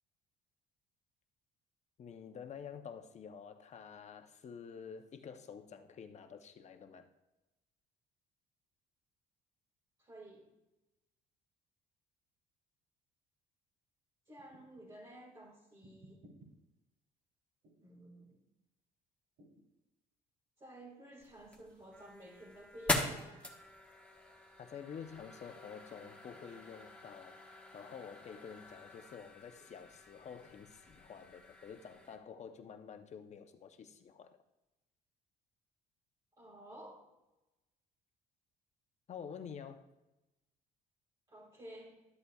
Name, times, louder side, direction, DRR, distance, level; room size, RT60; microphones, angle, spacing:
voice 1, 2.0-7.1 24.6-34.4 39.1-39.8, left 7 dB, 40° left, 8 dB, 0.8 m, -49 dB
voice 2, 10.0-10.5 14.3-16.2 17.8-18.4 20.6-23.5 36.4-37.1 41.3-42.1, right 1 dB, 25° right, -4 dB, 2.1 m, -53 dB
sound 1, 14.4-14.9 15.8-16.5 17.6-17.9 19.4-19.7, right 1 dB, 75° right, 3.1 m, -59 dB
sound 2, 21.2-32.2, left 2 dB, 5° left, 1.4 m, -43 dB
13.0 x 7.9 x 2.4 m, 0.99 s
cardioid pair, 110°, 17 cm